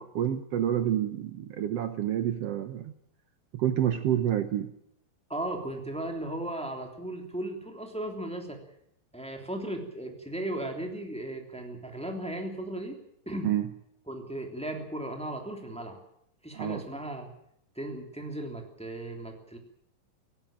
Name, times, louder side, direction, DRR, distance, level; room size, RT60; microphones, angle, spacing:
voice 1, 0.0-2.9 3.5-4.7 13.4-13.7 16.5-16.8, right 11 dB, 85° right, 9 dB, 1.3 m, -28 dB
voice 2, 5.3-8.6 9.1-13.0 13.2-13.5 14.1-16.0 16.4-17.3 17.7-19.6, right 1 dB, ahead, 3 dB, 2.5 m, -36 dB
17.5 x 17.5 x 8.9 m, 0.73 s
omnidirectional pair, 4.2 m